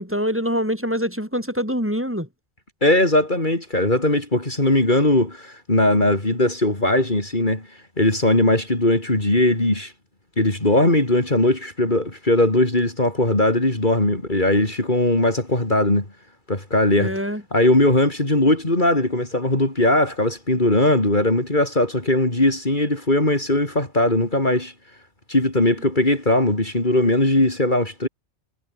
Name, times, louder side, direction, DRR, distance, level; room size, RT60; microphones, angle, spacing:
voice 1, 0.0-2.3 17.0-17.4, equal, 10° right, 8.0 m, -24 dB
voice 2, 2.8-7.7 8.0-9.9 10.4-16.0 16.5-17.1 17.5-24.7 25.3-28.1, left 1 dB, 45° left, 4.5 m, -19 dB
omnidirectional pair, 1.2 m